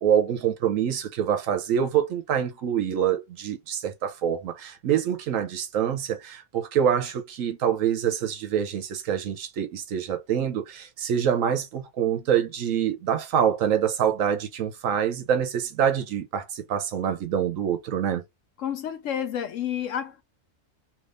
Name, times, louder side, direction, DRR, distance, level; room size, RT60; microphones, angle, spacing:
voice 1, 0.0-18.2, right 9 dB, 65° right, 0.9 m, -25 dB
voice 2, 18.6-20.2, left 9 dB, 70° left, 0.8 m, -30 dB
3.3 x 3.0 x 2.5 m
omnidirectional pair, 1.6 m